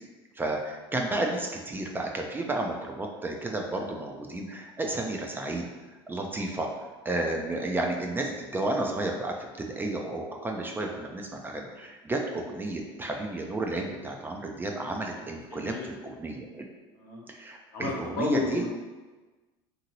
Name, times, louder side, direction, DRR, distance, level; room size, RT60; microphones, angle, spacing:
voice 1, 0.4-5.7 6.1-6.7 7.1-16.7 17.4-18.8, right 2 dB, 15° right, 1 dB, 0.3 m, -32 dB
voice 2, 15.1-15.9 16.9-17.2 17.7-18.8, left 2 dB, 70° left, -3 dB, 0.9 m, -32 dB
2.8 x 2.6 x 2.8 m, 1.2 s
supercardioid pair, 100°, 13 cm